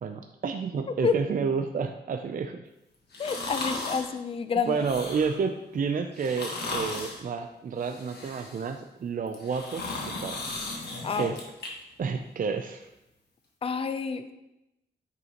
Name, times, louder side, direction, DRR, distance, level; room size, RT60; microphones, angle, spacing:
voice 1, 0.0-2.7 4.7-10.4 11.2-11.4 12.0-12.9, right 5 dB, 50° right, 6 dB, 0.4 m, -30 dB
sound 1, 3.1-4.1 4.7-5.4 6.1-7.2 7.8-8.7 9.3-11.7 12.1-12.2, left 2 dB, 65° left, 1.5 m, -36 dB
voice 2, 3.2-4.9 11.0-11.4 13.6-14.3, left 5 dB, 30° left, 10 dB, 0.4 m, -29 dB
9.3 x 5.4 x 2.9 m, 0.92 s
wide cardioid pair, 105°, 18 cm